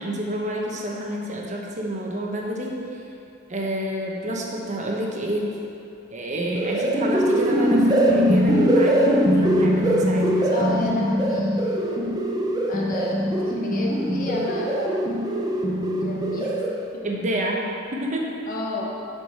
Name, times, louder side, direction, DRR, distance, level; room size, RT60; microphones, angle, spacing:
voice 1, 0.0-2.8 3.5-5.5 6.1-10.7 17.0-18.3, right 1 dB, 40° right, -1 dB, 1.1 m, -28 dB
sound 1, 6.4-16.9, equal, 20° right, 0.6 m, -22 dB
voice 2, 10.5-11.9 12.7-13.2 13.4-15.1 16.0-16.5 18.5-18.9, left 2 dB, 45° left, -2 dB, 1.0 m, -31 dB
7.6 x 5.1 x 5.8 m, 2.7 s
head